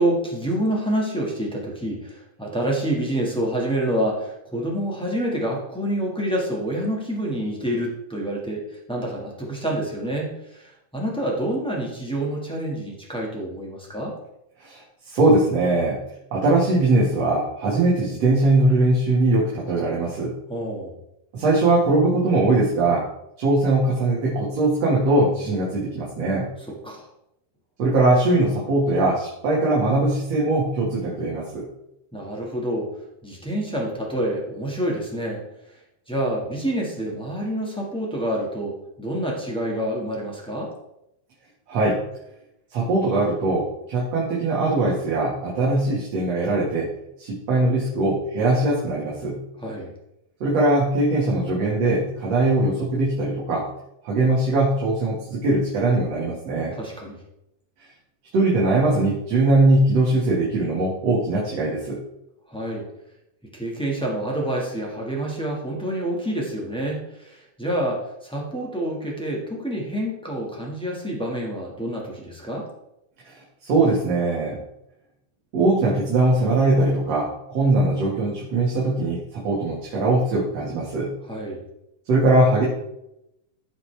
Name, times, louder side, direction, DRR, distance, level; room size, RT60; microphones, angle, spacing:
voice 1, 0.0-14.1 20.5-20.9 26.7-27.1 32.1-32.9 33.2-35.4 36.1-40.7 49.6-49.9 56.7-57.2 62.5-62.8 63.5-72.7 81.3-81.6, right 1 dB, 5° left, -4 dB, 0.6 m, -27 dB
voice 2, 15.1-16.0 16.3-20.3 21.3-23.1 23.4-26.5 27.8-31.7 41.7-42.0 42.7-46.9 47.2-49.4 50.4-53.7 54.0-56.7 58.3-62.0 73.2-74.6 75.5-81.1 82.1-82.6, right 2 dB, 55° right, -5 dB, 2.8 m, -21 dB
15.0 x 5.3 x 3.4 m, 0.84 s
omnidirectional pair, 3.7 m